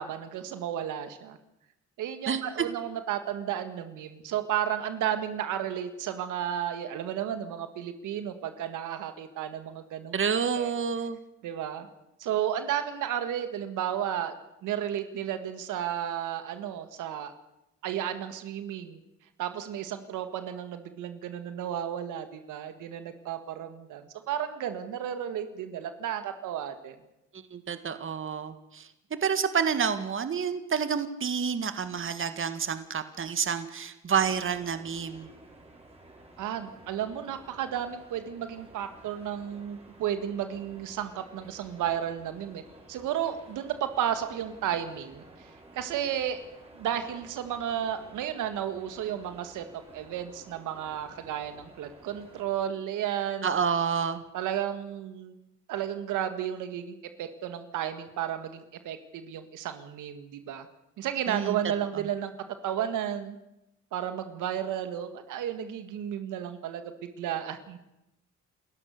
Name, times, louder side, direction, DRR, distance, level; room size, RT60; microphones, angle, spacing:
voice 1, 0.0-1.4 2.0-10.2 10.5-10.7 11.4-11.9 12.2-14.3 14.6-17.3 17.8-19.0 19.4-27.0 36.4-42.6 42.9-45.5 45.7-46.4 46.8-49.6 49.9-53.5 54.3-55.4 55.7-60.7 61.0-62.3 62.6-63.4 63.9-67.8, right 10 dB, 85° right, 9 dB, 2.0 m, -33 dB
voice 2, 10.1-11.2 27.5-28.9 29.2-35.3 53.4-54.2 61.3-61.6, right 6 dB, 45° right, 10 dB, 1.9 m, -29 dB
sound 1, 34.1-52.4, right 2 dB, 20° right, 5.6 m, -53 dB
28.5 x 14.5 x 6.7 m, 0.88 s
cardioid pair, 90°, 30 cm